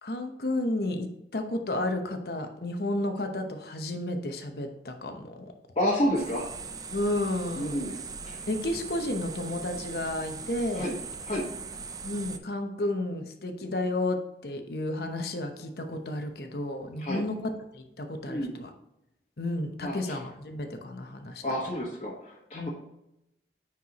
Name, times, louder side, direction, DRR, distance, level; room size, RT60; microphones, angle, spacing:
voice 1, 0.0-5.5 6.9-7.8 8.5-10.9 12.0-18.7 19.4-21.4 22.5-22.7, left 1 dB, 60° left, 5 dB, 0.9 m, -32 dB
voice 2, 5.7-6.4 7.6-8.0 8.2-8.4 10.7-11.0 11.3-11.5 17.0-17.2 18.3-18.5 19.8-20.2 21.4-22.7, equal, 35° left, -7 dB, 1.4 m, -29 dB
sound 1, 6.1-12.4, right 5 dB, 20° right, 0.4 m, -40 dB
9.4 x 4.6 x 3.0 m, 0.87 s
head